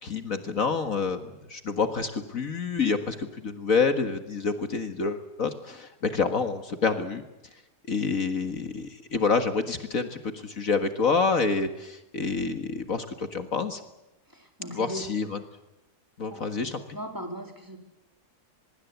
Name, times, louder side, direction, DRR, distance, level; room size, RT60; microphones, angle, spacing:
voice 1, 0.0-7.2 7.9-13.8 14.8-15.4 16.2-16.8, left 4 dB, 55° left, 8 dB, 2.0 m, -28 dB
voice 2, 14.3-15.1 16.3-16.5 16.9-17.8, equal, 10° right, 4 dB, 3.6 m, -38 dB
24.0 x 22.0 x 8.2 m, 0.96 s
omnidirectional pair, 1.7 m